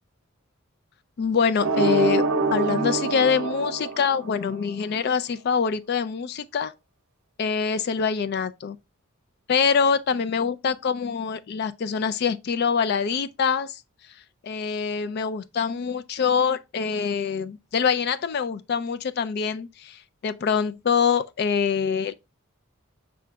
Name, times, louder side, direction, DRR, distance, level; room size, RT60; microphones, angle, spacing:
voice 1, 1.2-2.2 2.5-6.7 7.4-8.8 9.5-13.8 14.4-22.1, left 6 dB, 50° left, 0.3 m, -25 dB
sound 1, 1.6-4.6, right 3 dB, 70° right, 0.6 m, -25 dB
5.9 x 3.7 x 2.2 m
head